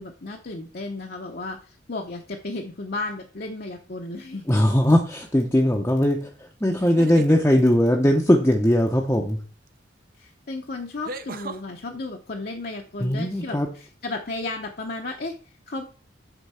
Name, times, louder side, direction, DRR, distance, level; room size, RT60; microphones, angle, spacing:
voice 1, 0.0-4.4 10.1-15.9, left 2 dB, 50° left, 1 dB, 0.7 m, -34 dB
sound 1, 4.2-4.6 6.7-7.4 9.7-9.8 11.0-11.6, right 2 dB, 50° right, 0.6 m, -36 dB
voice 2, 4.5-9.4 13.0-13.7, equal, 10° left, 0 dB, 0.6 m, -20 dB
8.2 x 3.8 x 5.5 m, 0.41 s
head